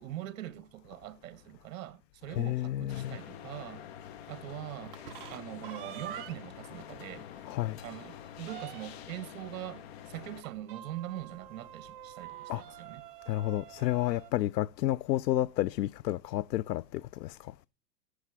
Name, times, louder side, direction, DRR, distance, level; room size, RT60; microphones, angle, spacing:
voice 1, 0.0-3.8 4.3-5.0 5.3-7.3 7.8-13.0, right 13 dB, 55° right, 1.3 m, -42 dB
voice 2, 2.3-3.2 7.4-7.8 12.5-12.6 13.3-17.5, left 14 dB, 80° left, 0.6 m, -31 dB
sound 1, 2.9-10.4, left 10 dB, 40° left, 0.9 m, -47 dB
sound 2, 4.8-6.6 7.1-7.2 7.5-7.6 8.0-9.2 10.4-14.3, right 13 dB, 35° right, 0.5 m, -46 dB
17.5 x 6.7 x 4.7 m
hypercardioid pair, 155°, 49 cm